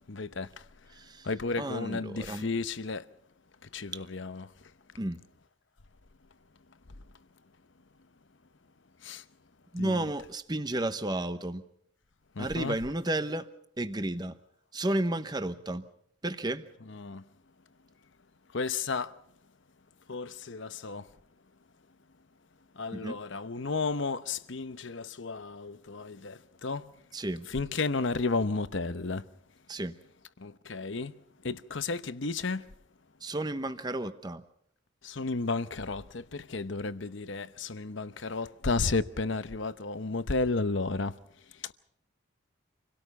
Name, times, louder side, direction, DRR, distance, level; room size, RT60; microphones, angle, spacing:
voice 1, 0.1-0.5 1.3-3.0 3.7-4.5 9.0-9.2 9.8-10.1 12.4-12.8 16.9-17.2 18.5-19.1 20.1-21.0 22.8-26.8 27.5-29.2 30.4-31.1 31.4-32.6 35.0-41.1, left 3 dB, 60° left, 0.9 m, -32 dB
voice 2, 0.9-1.3 1.6-2.5 3.9-4.0 5.0-5.2 9.7-11.6 12.4-13.5 13.8-14.4 14.7-15.9 16.2-16.7 22.9-23.2 27.1-27.5 29.7-30.0 33.2-34.4, right 1 dB, 20° right, 0.9 m, -32 dB
27.5 x 17.5 x 5.5 m
head